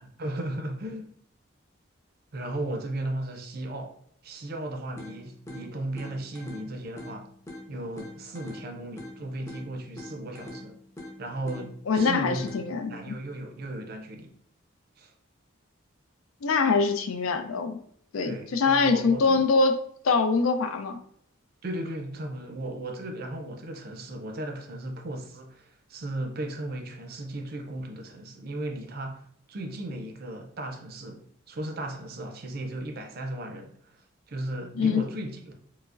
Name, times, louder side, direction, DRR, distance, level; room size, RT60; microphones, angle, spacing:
voice 1, 0.0-1.1 2.3-3.9 4.2-7.3 7.7-10.8 11.2-12.4 12.9-14.3 15.0-15.1 18.2-19.4 21.6-29.2 29.5-33.9 34.3-35.5, right 1 dB, 45° right, 0.4 m, -36 dB
sound 1, 5.0-13.0, left 1 dB, 15° left, 0.5 m, -45 dB
voice 2, 11.9-13.2 16.4-17.8 18.1-19.8 20.0-21.0 34.8-35.0, left 4 dB, 80° left, 0.4 m, -24 dB
4.6 x 2.0 x 2.4 m
head